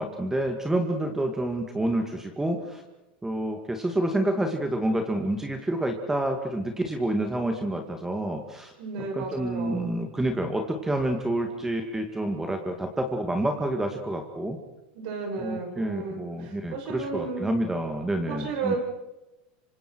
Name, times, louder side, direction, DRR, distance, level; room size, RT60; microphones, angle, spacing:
voice 1, 0.0-2.8 3.2-8.7 9.1-14.6 15.4-18.8, right 1 dB, 10° right, 4 dB, 2.1 m, -28 dB
voice 2, 8.8-9.9 14.9-17.5 18.3-18.8, right 4 dB, 70° right, 1 dB, 7.8 m, -33 dB
27.5 x 25.5 x 4.7 m, 1.0 s
supercardioid pair, 110°, 5 cm